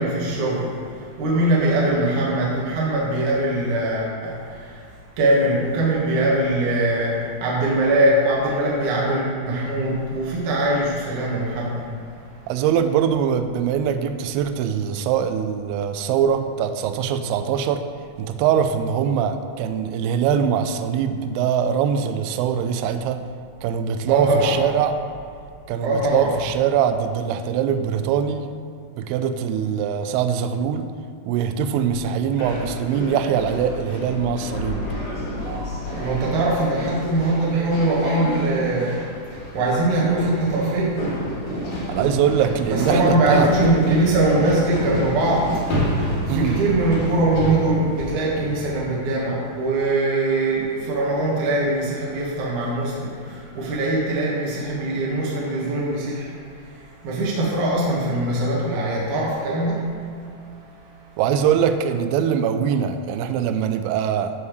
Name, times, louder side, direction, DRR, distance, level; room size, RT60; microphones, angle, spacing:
voice 1, 0.0-11.9 24.1-24.6 25.8-26.3 35.3-39.0 39.5-41.1 42.7-59.9 60.2-60.3, right 1 dB, 55° right, -6 dB, 2.5 m, -22 dB
voice 2, 12.5-17.9 18.2-23.2 23.6-25.0 25.7-28.5 29.0-30.9 31.3-34.8 41.9-43.8 46.3-46.6 61.2-64.3, right 8 dB, 85° right, 8 dB, 2.3 m, -22 dB
sound 1, 32.4-48.9, equal, 80° left, 1.3 m, -29 dB
14.0 x 5.8 x 3.2 m, 2.4 s
omnidirectional pair, 5.0 m